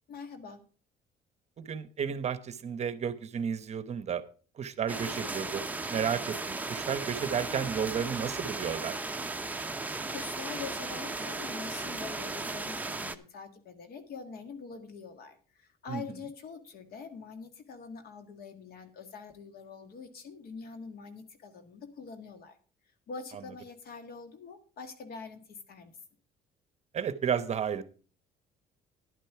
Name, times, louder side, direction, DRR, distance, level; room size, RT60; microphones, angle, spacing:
voice 1, 0.1-0.6 10.1-22.6 23.1-26.0, left 5 dB, 65° left, 9 dB, 1.7 m, -44 dB
voice 2, 1.6-4.2 4.6-5.6 5.9-9.0 15.9-16.0 26.9-27.8, right 7 dB, 40° right, 14 dB, 0.9 m, -32 dB
sound 1, 4.9-13.2, right 3 dB, 10° right, 0.7 m, -36 dB
11.0 x 9.0 x 4.7 m, 0.39 s
cardioid pair, 110°, 17 cm